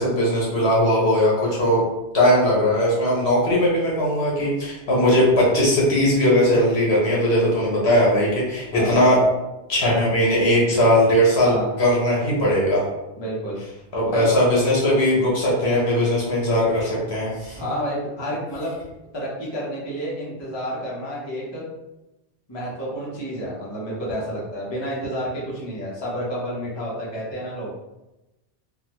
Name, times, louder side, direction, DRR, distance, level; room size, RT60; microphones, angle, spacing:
voice 1, 0.0-1.8 2.1-9.2 9.7-12.9 13.9-17.6, equal, 70° left, -5 dB, 1.3 m, -19 dB
voice 2, 13.2-13.6 14.1-14.3 17.6-18.7 19.1-21.6 22.5-27.7, equal, 25° left, -5 dB, 0.7 m, -29 dB
3.7 x 2.1 x 2.9 m, 1.0 s
omnidirectional pair, 1.1 m